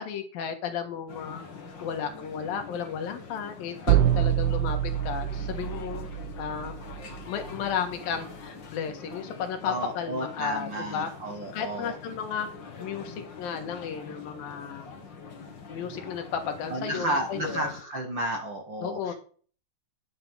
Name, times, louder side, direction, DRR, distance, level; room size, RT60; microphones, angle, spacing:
voice 1, 0.0-1.5 1.8-6.1 6.4-6.7 7.3-11.1 11.5-12.5 12.8-14.9 15.7-17.7 18.8-19.1, left 7 dB, 65° left, 6 dB, 3.1 m, -33 dB
sound 1, 1.1-17.8, left 5 dB, 40° left, 1.8 m, -44 dB
sound 2, 3.9-7.7, right 11 dB, 80° right, 2.9 m, -26 dB
voice 2, 9.6-11.9 13.0-13.1 15.3-15.5 16.7-19.1, right 1 dB, 60° right, 4 dB, 1.2 m, -32 dB
10.5 x 8.5 x 5.6 m, 0.43 s
omnidirectional pair, 4.6 m